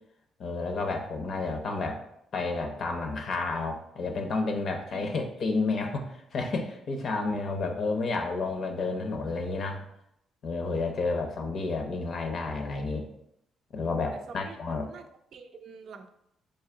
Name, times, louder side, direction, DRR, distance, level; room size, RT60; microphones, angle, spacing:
voice 1, 0.4-2.0 2.3-9.8 10.4-13.1 13.7-14.9, left 3 dB, 60° left, 4 dB, 0.6 m, -31 dB
voice 2, 14.1-14.6 14.9-16.1, right 5 dB, 65° right, 6 dB, 0.4 m, -47 dB
3.4 x 2.7 x 3.7 m, 0.77 s
cardioid pair, 90°, 0 cm